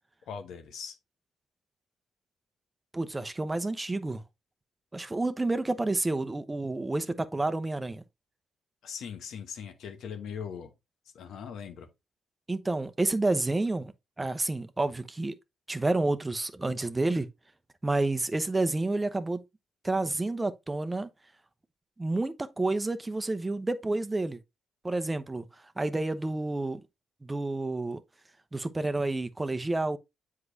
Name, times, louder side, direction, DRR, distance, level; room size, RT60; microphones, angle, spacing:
voice 1, 0.3-1.0 8.8-10.7 11.1-11.9, left 7 dB, 70° left, 1.0 m, -40 dB
voice 2, 2.9-4.2 4.9-8.0 12.5-13.9 14.2-15.4 15.7-17.3 17.8-19.4 19.8-21.1 22.0-24.4 24.8-25.5 25.8-26.8 27.2-28.0 28.5-30.0, right 2 dB, 20° right, 0.8 m, -29 dB
7.9 x 4.8 x 2.7 m
hypercardioid pair, 50°, 0 cm